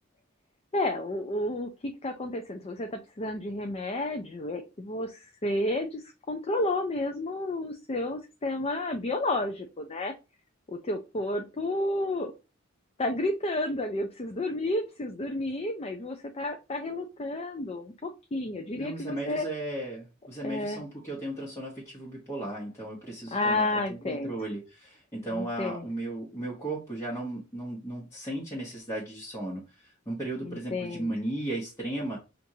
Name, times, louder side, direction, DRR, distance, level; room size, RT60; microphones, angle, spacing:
voice 1, 0.7-10.1 10.7-12.3 13.0-19.5 20.4-20.8 23.3-24.3 25.3-25.9 30.4-31.1, left 1 dB, 30° left, 0.5 m, -31 dB
voice 2, 18.8-32.2, right 1 dB, 15° left, 1.1 m, -35 dB
6.0 x 2.6 x 2.7 m
head